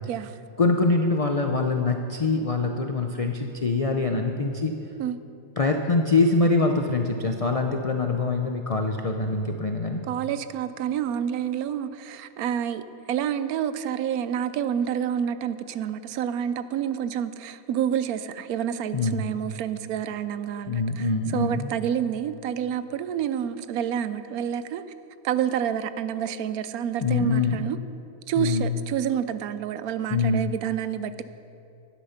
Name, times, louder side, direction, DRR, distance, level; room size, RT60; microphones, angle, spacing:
voice 1, 0.6-4.7 5.6-10.0 18.9-19.2 20.7-21.7 27.0-27.6 28.4-28.8 30.1-30.5, left 3 dB, 60° left, 3 dB, 0.3 m, -24 dB
voice 2, 10.1-12.8 13.1-21.1 21.3-24.8 25.2-27.8 28.3-31.2, right 9 dB, 80° right, 13 dB, 1.1 m, -28 dB
11.5 x 10.0 x 5.7 m, 2.6 s
omnidirectional pair, 1.5 m